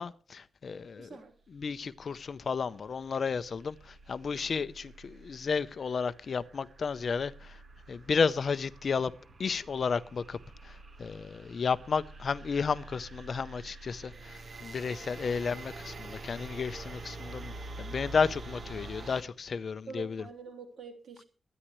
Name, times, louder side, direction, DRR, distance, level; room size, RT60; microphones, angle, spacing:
voice 1, 0.0-1.1 1.5-3.8 4.1-7.3 7.9-9.1 9.4-10.4 10.6-10.7 11.0-17.5 17.8-20.2, left 5 dB, 45° left, 0.6 m, -32 dB
voice 2, 1.0-1.3 19.9-21.2, right 4 dB, 75° right, 3.2 m, -45 dB
sound 1, 1.6-19.2, right 2 dB, 40° right, 1.1 m, -47 dB
23.0 x 10.0 x 3.1 m
wide cardioid pair, 175°, 0 cm